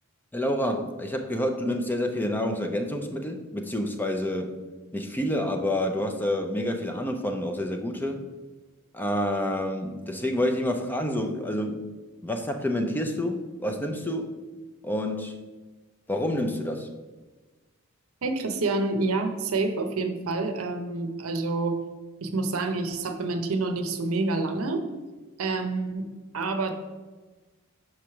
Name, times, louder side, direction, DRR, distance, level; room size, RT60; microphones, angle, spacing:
voice 1, 0.3-4.5 4.9-8.2 8.9-11.9 12.2-14.3 14.8-15.4 16.1-16.9, left 1 dB, 10° left, 4 dB, 0.5 m, -28 dB
voice 2, 18.2-21.8 22.2-24.8 25.4-26.1 26.3-26.7, right 3 dB, 75° right, 7 dB, 0.7 m, -28 dB
6.1 x 3.2 x 5.7 m, 1.2 s
head